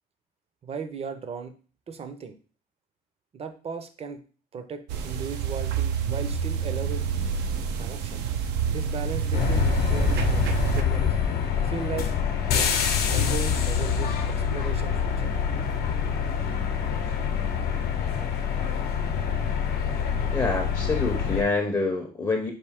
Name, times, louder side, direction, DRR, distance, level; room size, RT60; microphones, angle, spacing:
voice 1, 0.6-1.5 1.9-2.3 3.3-4.2 4.5-7.1 7.8-8.3 8.7-11.2 11.6-12.1 12.5-12.8 13.1-15.3, right 6 dB, 35° right, 9 dB, 0.6 m, -37 dB
sound 1, 4.9-10.8, right 8 dB, 85° right, 0.5 m, -28 dB
sound 2, 9.3-21.4, left 7 dB, 70° left, 0.7 m, -26 dB
voice 2, 20.3-22.5, left 3 dB, 20° left, 3 dB, 0.6 m, -26 dB
4.4 x 2.7 x 3.5 m, 0.39 s
cardioid pair, 110°, 17 cm